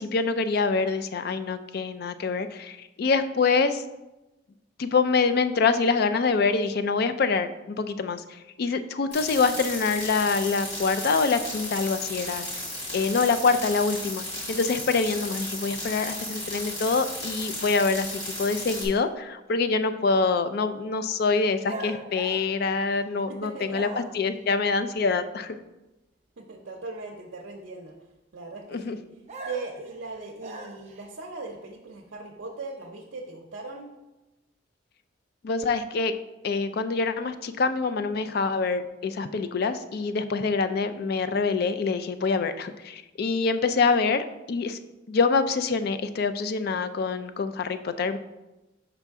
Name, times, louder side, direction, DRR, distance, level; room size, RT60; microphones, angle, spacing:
voice 1, 0.0-3.8 4.8-12.5 12.9-25.6 28.7-29.0 35.4-36.1 36.4-44.8 45.1-48.2, left 4 dB, 55° left, 11 dB, 0.4 m, -25 dB
sound 1, 9.1-18.9, left 1 dB, 35° left, 2.1 m, -35 dB
sound 2, 21.6-23.2 23.7-24.4 29.3-31.1, right 2 dB, 35° right, 0.6 m, -40 dB
voice 2, 23.3-23.8 26.4-27.9 28.3-29.0 29.4-33.9, right 3 dB, 75° right, -1 dB, 0.6 m, -39 dB
5.5 x 5.0 x 3.5 m, 1.0 s
head